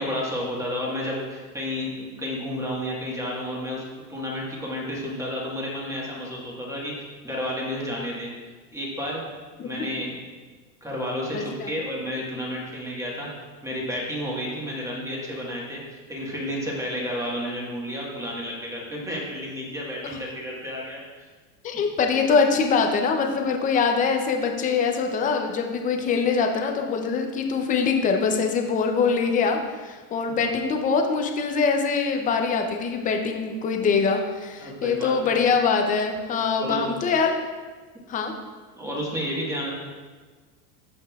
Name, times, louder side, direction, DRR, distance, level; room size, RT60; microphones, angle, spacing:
voice 1, 0.0-3.8 4.1-6.9 7.2-8.3 8.7-9.2 9.6-10.1 10.8-13.3 13.6-21.3 21.7-21.8 30.3-30.6 34.6-35.3 36.6-36.9 38.8-39.7, equal, 5° right, -4 dB, 1.4 m, -31 dB
voice 2, 11.3-11.7 21.6-37.4 38.1-38.3, left 5 dB, 20° left, 4 dB, 0.5 m, -23 dB
14.5 x 5.4 x 2.3 m, 1.4 s
supercardioid pair, 150°, 47 cm